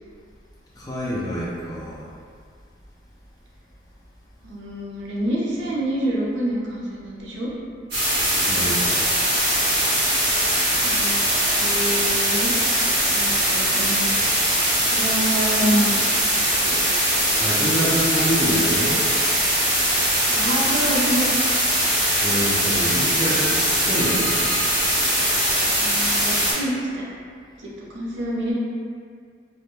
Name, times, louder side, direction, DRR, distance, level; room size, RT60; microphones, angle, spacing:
voice 1, 0.7-2.1 8.4-9.0 17.2-19.0 22.1-24.5, equal, 20° left, -7 dB, 0.4 m, -26 dB
voice 2, 4.4-7.5 10.8-11.2 11.6-12.5 13.1-16.1 16.6-17.0 20.3-21.3 25.8-27.1 27.6-28.5, right 1 dB, 85° right, -5 dB, 0.5 m, -27 dB
sound 1, 7.9-26.5, right 1 dB, 55° right, 1.0 m, -21 dB
2.1 x 2.1 x 2.9 m, 2.1 s
head